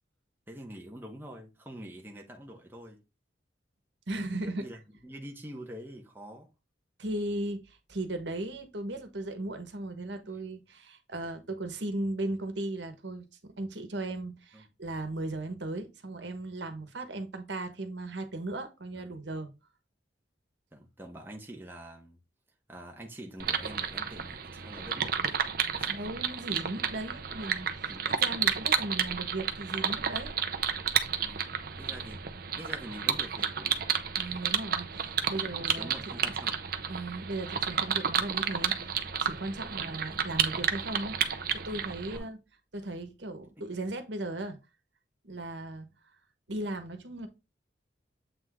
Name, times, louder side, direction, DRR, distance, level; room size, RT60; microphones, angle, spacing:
voice 1, 0.5-3.0 4.4-6.5 10.3-10.4 14.5-14.7 18.9-19.2 20.7-22.2 22.7-26.0 27.9-28.2 31.2-31.5 31.8-32.3 32.5-33.8 35.3-36.6 39.7-40.1 42.0-42.3 46.5-46.7, right 1 dB, 10° right, 1.0 m, -46 dB
voice 2, 4.1-4.6 7.0-19.5 25.9-30.4 34.2-36.2 36.9-41.2 41.6-42.4 42.7-44.6 45.2-45.9 46.5-47.3, right 2 dB, 70° right, 1.3 m, -37 dB
sound 1, 23.4-42.2, right 7 dB, 50° right, 0.7 m, -31 dB
7.8 x 3.5 x 3.6 m
head